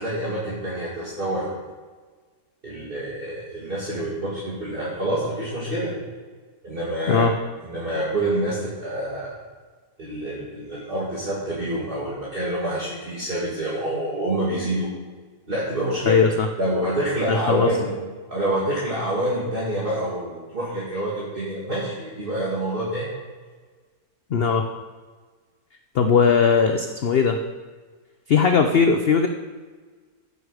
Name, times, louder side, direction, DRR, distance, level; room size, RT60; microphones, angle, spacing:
voice 1, 0.0-1.5 2.6-5.9 6.6-7.3 7.6-9.4 10.0-14.9 15.5-16.3 16.6-17.9 18.3-23.1, right 1 dB, 30° right, -8 dB, 2.4 m, -27 dB
voice 2, 16.1-16.5 17.3-17.7 24.3-24.6 25.9-27.4 28.3-29.3, left 6 dB, 60° left, 6 dB, 0.6 m, -19 dB
15.0 x 6.4 x 4.9 m, 1.5 s
omnidirectional pair, 1.8 m